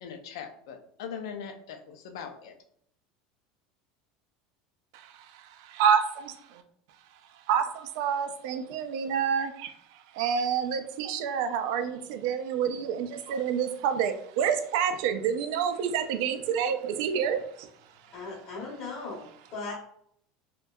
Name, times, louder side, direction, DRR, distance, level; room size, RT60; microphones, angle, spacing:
voice 1, 0.0-2.5, left 7 dB, 85° left, 5 dB, 0.4 m, -40 dB
voice 2, 4.9-6.6 7.5-17.7, right 7 dB, 65° right, 8 dB, 0.3 m, -28 dB
voice 3, 18.1-19.7, left 3 dB, 40° left, -6 dB, 0.8 m, -38 dB
2.6 x 2.1 x 2.2 m, 0.65 s
cardioid pair, 165°, 2 cm